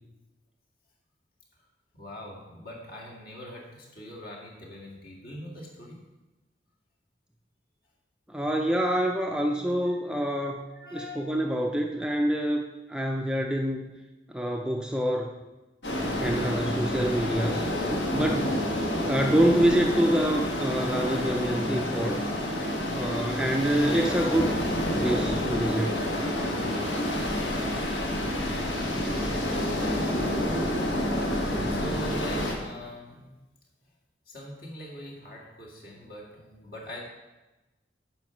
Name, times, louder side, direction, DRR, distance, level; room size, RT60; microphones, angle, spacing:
voice 1, 1.9-6.0 9.8-9.9 10.7-11.4 28.0-28.5 29.4-30.2 31.7-33.4 34.3-37.0, equal, 55° left, -2 dB, 2.2 m, -42 dB
voice 2, 8.3-10.6 10.9-12.6 12.9-13.9 14.3-15.3 16.1-18.6 19.0-22.2 22.9-24.6 25.0-26.0, right 1 dB, 5° right, 1 dB, 0.5 m, -26 dB
sound 1, 15.8-32.5, left 1 dB, 75° left, 1.6 m, -28 dB
9.3 x 5.1 x 5.9 m, 1.1 s
head